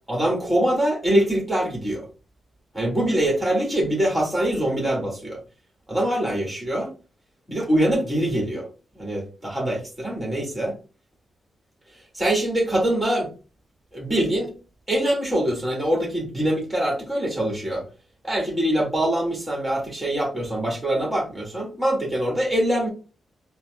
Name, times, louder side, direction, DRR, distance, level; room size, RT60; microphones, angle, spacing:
voice 1, 0.1-2.0 2.7-5.4 5.9-6.9 7.5-8.7 8.9-10.8 11.9-13.3 13.9-14.5 14.9-17.8 18.2-22.9, right 1 dB, 5° right, -2 dB, 1.7 m, -24 dB
4.4 x 2.1 x 2.2 m, 0.33 s
cardioid pair, 70°, 0 cm